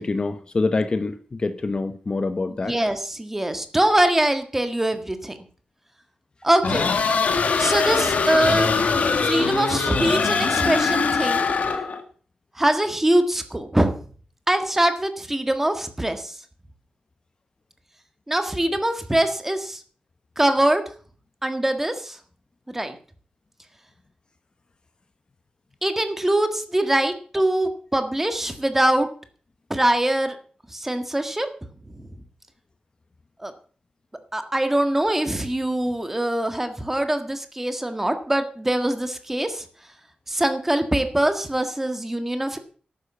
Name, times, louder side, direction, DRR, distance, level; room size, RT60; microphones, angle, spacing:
voice 1, 0.0-2.7, left 3 dB, 35° left, 10 dB, 0.9 m, -25 dB
voice 2, 2.7-5.4 6.4-6.9 7.6-8.8 9.2-11.5 12.6-13.9 14.5-16.4 18.3-19.8 20.4-20.8 21.4-22.2 22.7-23.0 25.8-29.1 29.7-30.4 30.7-31.5 31.9-32.1 33.4-33.5 34.3-39.7 40.3-42.6, right 1 dB, 10° right, 8 dB, 1.6 m, -23 dB
sound 1, 6.6-12.0, left 5 dB, 65° left, 1.7 m, -22 dB
12.0 x 9.3 x 6.9 m, 0.43 s
wide cardioid pair, 155°, 3 cm